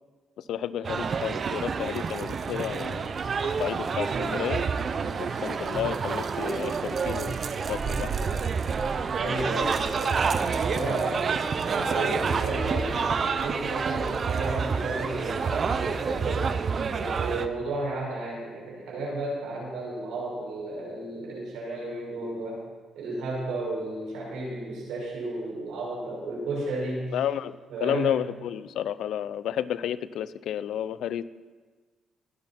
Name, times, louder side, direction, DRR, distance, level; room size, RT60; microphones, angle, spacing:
voice 1, 0.4-3.1 3.4-4.6 5.2-7.4 7.7-8.5 27.1-31.2, left 10 dB, 75° left, 16 dB, 0.5 m, -31 dB
sound 1, 0.8-17.5, right 5 dB, 45° right, 0.8 m, -28 dB
voice 2, 9.1-11.2 11.6-16.5 16.9-22.6 22.9-27.2 27.7-28.2, right 2 dB, 85° right, -3 dB, 5.8 m, -33 dB
21.0 x 10.5 x 4.3 m, 1.4 s
cardioid pair, 90°, 0 cm